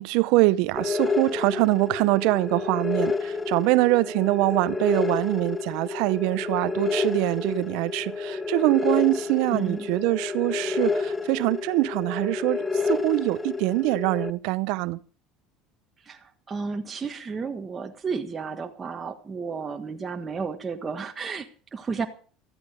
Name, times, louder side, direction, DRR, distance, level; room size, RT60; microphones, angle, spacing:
voice 1, 0.0-15.0, right 21 dB, 70° right, 0.7 m, -24 dB
sound 1, 0.7-14.3, left 4 dB, 20° left, 1.1 m, -29 dB
voice 2, 9.5-9.9 16.0-22.1, right 5 dB, 25° right, 1.5 m, -32 dB
14.5 x 13.5 x 5.1 m
supercardioid pair, 95°, 0 cm